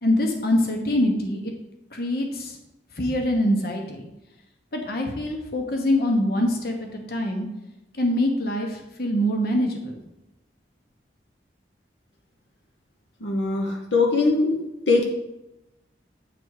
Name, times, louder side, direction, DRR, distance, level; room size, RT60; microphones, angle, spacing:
voice 1, 0.0-1.5 1.9-2.6 3.0-4.1 4.7-6.8 7.1-7.5 8.0-10.0, left 1 dB, 55° left, 2 dB, 1.1 m, -24 dB
voice 2, 13.2-14.6 14.9-15.0, left 3 dB, 80° left, 1 dB, 0.9 m, -21 dB
9.0 x 3.5 x 4.7 m, 0.95 s
head